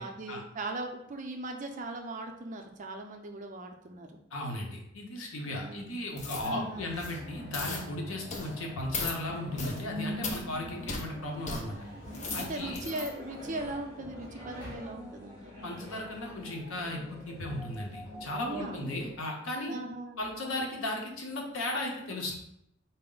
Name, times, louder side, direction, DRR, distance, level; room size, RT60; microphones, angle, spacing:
voice 1, 0.0-4.2 5.4-6.0 6.4-6.9 12.4-15.8 18.3-19.0 19.7-20.2, right 2 dB, 40° right, 4 dB, 0.5 m, -39 dB
voice 2, 4.3-11.8 12.3-12.8 15.6-19.8 20.2-22.4, left 1 dB, 90° left, 0 dB, 0.8 m, -36 dB
sound 1, 6.1-14.8, equal, 65° left, 1.3 m, -49 dB
sound 2, 6.2-6.5 6.9-7.2 7.5-7.8 8.3-8.5 8.9-9.2 9.6-9.8 10.2-10.4 10.9-11.0 11.5-11.6 12.0-13.1 13.6-13.7, left 3 dB, 35° left, 0.5 m, -37 dB
sound 3, 9.3-19.1, equal, 15° left, 0.9 m, -44 dB
4.1 x 2.1 x 3.7 m, 0.77 s
head